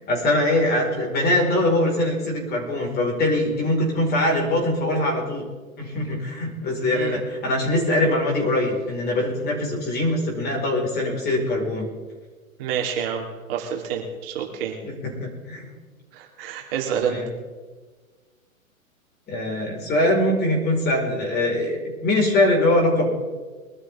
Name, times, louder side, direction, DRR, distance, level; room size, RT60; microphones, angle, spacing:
voice 1, 0.1-5.4 5.8-11.9 14.8-14.9 15.2-15.7 17.0-17.3 19.3-23.1, left 1 dB, 25° left, -1 dB, 5.3 m, -22 dB
voice 2, 6.9-7.2 12.6-14.8 16.1-17.2, right 8 dB, 40° right, 0 dB, 3.0 m, -28 dB
23.0 x 13.0 x 3.8 m, 1.4 s
figure-of-eight pair, 115°, 42 cm